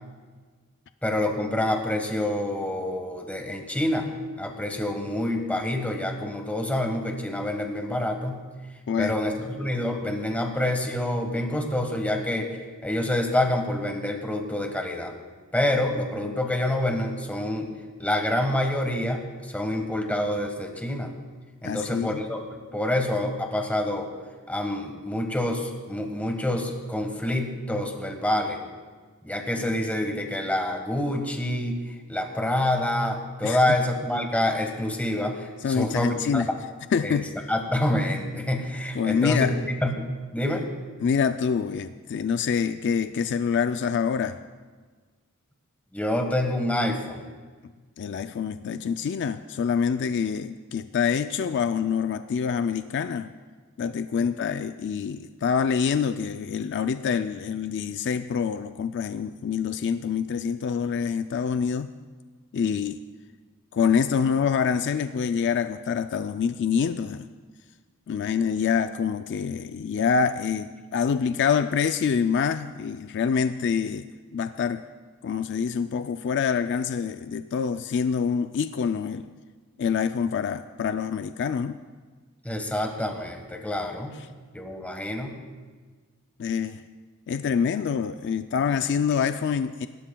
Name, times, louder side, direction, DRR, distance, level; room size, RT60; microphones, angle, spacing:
voice 1, 1.0-4.1 4.4-8.5 9.0-12.6 12.8-15.1 15.5-17.7 18.0-21.1 21.6-24.1 24.5-28.6 29.2-31.8 32.1-36.6 37.0-37.2 37.5-40.6 45.9-47.3 54.2-54.3 82.4-84.1 84.5-85.4, left 1 dB, 5° left, 3 dB, 1.4 m, -27 dB
voice 2, 21.6-22.2 33.4-33.8 35.6-36.5 36.9-37.3 38.9-39.5 41.0-44.4 48.0-53.3 53.8-61.9 62.5-63.0 63.7-67.3 68.1-74.0 74.3-74.8 75.2-79.3 79.8-81.8 84.2-84.3 86.4-86.8 87.3-89.9, left 6 dB, 55° left, 10 dB, 0.3 m, -26 dB
27.0 x 13.0 x 2.3 m, 1.4 s
head